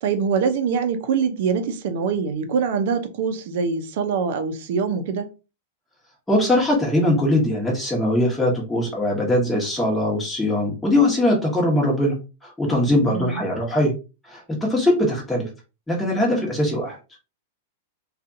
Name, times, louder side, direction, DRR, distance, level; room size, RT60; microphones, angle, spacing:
voice 1, 0.0-5.3 13.1-13.4, right 6 dB, 60° right, 0.6 m, -24 dB
voice 2, 6.3-12.2 12.4-13.9 14.3-15.5 15.9-17.0, left 1 dB, 5° left, 1.1 m, -21 dB
2.6 x 2.3 x 2.6 m
supercardioid pair, 140°, 0 cm